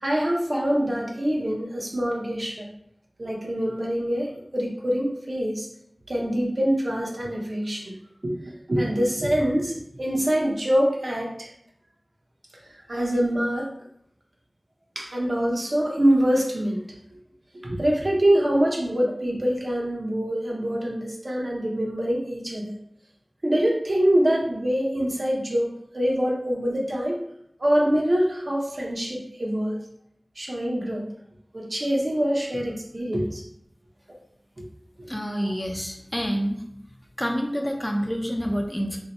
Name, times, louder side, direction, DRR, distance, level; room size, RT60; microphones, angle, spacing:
voice 1, 0.0-2.7 3.2-5.7 6.1-7.9 8.2-11.5 12.9-13.7 15.0-16.8 17.6-22.8 23.4-27.2 27.6-29.8 30.4-31.1 31.5-33.4, equal, 60° right, -2 dB, 0.8 m, -24 dB
voice 2, 35.1-36.6 37.2-39.0, equal, 15° left, 2 dB, 0.4 m, -27 dB
2.7 x 2.1 x 4.1 m, 0.72 s
wide cardioid pair, 50°, 0 cm